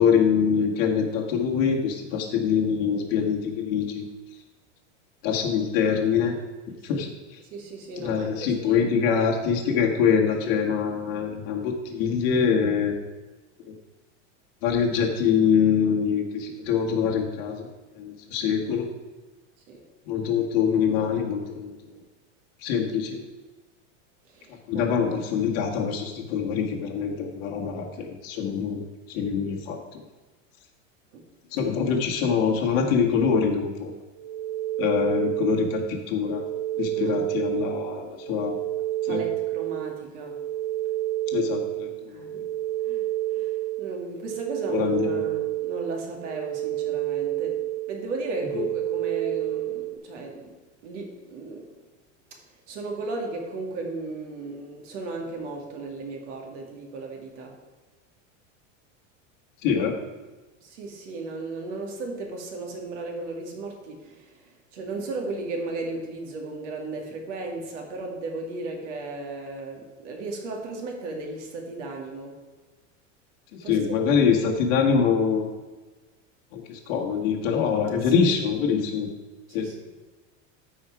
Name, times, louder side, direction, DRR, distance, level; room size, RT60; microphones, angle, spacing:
voice 1, 0.0-4.0 5.2-6.4 6.8-7.1 8.0-13.0 14.6-17.7 18.0-18.9 20.1-21.7 22.6-23.2 24.7-30.0 31.5-33.9 34.8-36.4 36.8-38.5 39.1-39.2 41.3-42.2 44.7-45.2 59.6-59.9 73.7-75.5 76.5-79.1 79.5-79.7, left 6 dB, 50° left, 1 dB, 1.6 m, -24 dB
voice 2, 7.5-8.8 19.7-19.8 24.3-24.9 31.1-31.3 36.9-37.4 39.1-40.4 42.1-42.5 42.8-50.6 50.8-51.8 52.3-57.6 60.6-72.4 73.6-74.0 78.0-78.2 79.5-79.8, right 3 dB, 65° right, 2 dB, 2.3 m, -35 dB
sound 1, 34.2-50.0, right 15 dB, 85° right, 1.5 m, -30 dB
13.5 x 5.0 x 4.8 m, 1.2 s
supercardioid pair, 170°, 38 cm